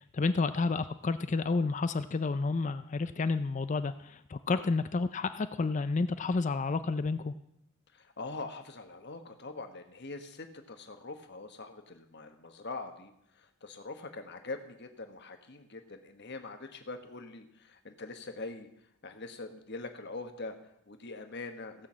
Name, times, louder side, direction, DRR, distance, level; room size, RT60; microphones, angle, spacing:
voice 1, 0.0-7.3, left 3 dB, 35° left, 12 dB, 0.4 m, -30 dB
voice 2, 7.9-18.7 19.0-21.9, left 3 dB, 50° left, 6 dB, 1.3 m, -43 dB
16.5 x 6.3 x 7.4 m, 0.79 s
head